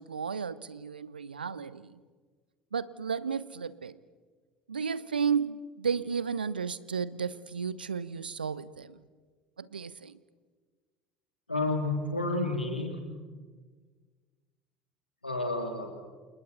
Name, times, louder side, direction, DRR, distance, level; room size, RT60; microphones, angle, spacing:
voice 1, 0.0-2.0 2.7-4.0 4.7-9.0 9.6-10.2, right 6 dB, 80° right, 19 dB, 0.7 m, -33 dB
voice 2, 11.5-13.0 15.2-15.9, left 2 dB, 85° left, 3 dB, 2.9 m, -30 dB
29.0 x 28.5 x 4.2 m, 1.5 s
figure-of-eight pair, 65°, 5 cm